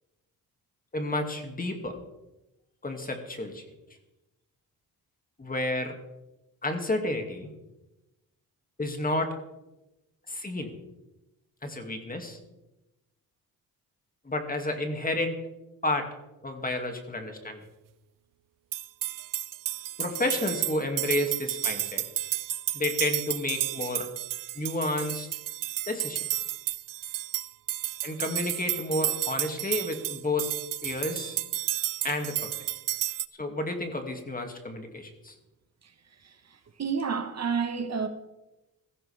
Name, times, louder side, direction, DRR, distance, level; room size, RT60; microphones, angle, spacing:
voice 1, 0.9-1.9 2.8-3.6 5.4-6.0 6.6-7.5 8.8-9.3 10.3-10.7 11.6-12.4 14.2-15.4 15.8-16.1 16.4-17.6 20.0-22.0 22.7-24.1 24.5-25.3 25.9-26.3 28.0-30.5 30.8-31.4 32.0-32.7 33.4-35.3, left 2 dB, 25° left, 2.3 m, -31 dB
sound 1, 18.7-33.3, right 13 dB, 65° right, 0.6 m, -32 dB
voice 2, 36.8-38.1, right 6 dB, 45° right, 1.3 m, -29 dB
16.0 x 14.5 x 3.5 m
cardioid pair, 90°, 36 cm